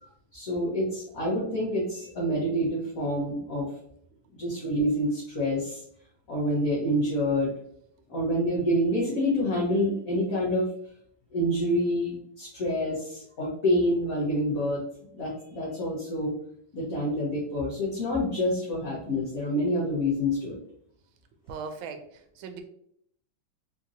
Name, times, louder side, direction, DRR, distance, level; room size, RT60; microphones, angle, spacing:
voice 1, 0.0-3.7 4.3-5.8 6.3-7.5 8.1-10.6 11.3-14.8 15.1-16.3 16.7-20.6, equal, 55° left, -6 dB, 1.1 m, -27 dB
voice 2, 21.5-22.6, right 5 dB, 80° right, 8 dB, 1.3 m, -39 dB
3.8 x 2.9 x 2.5 m, 0.68 s
omnidirectional pair, 2.2 m